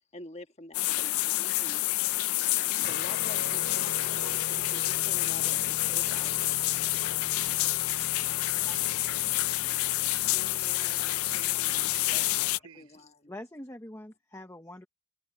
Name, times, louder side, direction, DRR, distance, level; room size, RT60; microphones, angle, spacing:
voice 1, 0.1-1.8 2.5-5.6 5.9-6.3 8.6-8.9 10.3-12.2 12.8-13.3, left 1 dB, 30° left, 1.5 m, -48 dB
sound 1, 0.7-12.6, left 18 dB, 75° left, 0.4 m, -28 dB
Guitar, 2.8-12.6, left 2 dB, 50° left, 3.9 m, -44 dB
voice 2, 7.4-8.1 8.3-9.5 11.9-13.0, right 4 dB, 85° right, 5.7 m, -52 dB
voice 3, 13.3-14.9, left 1 dB, 10° left, 0.8 m, -44 dB
head